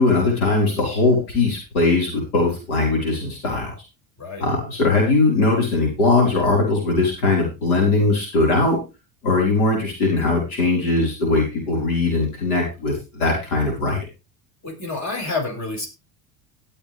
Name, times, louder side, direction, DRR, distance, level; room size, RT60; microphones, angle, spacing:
voice 1, 0.0-3.7 4.4-8.8 9.2-14.0, left 3 dB, 85° left, -1 dB, 4.9 m, -20 dB
voice 2, 14.6-15.9, left 3 dB, 40° left, 0 dB, 6.6 m, -28 dB
18.5 x 7.1 x 3.5 m, 0.29 s
hypercardioid pair, 80°, 43 cm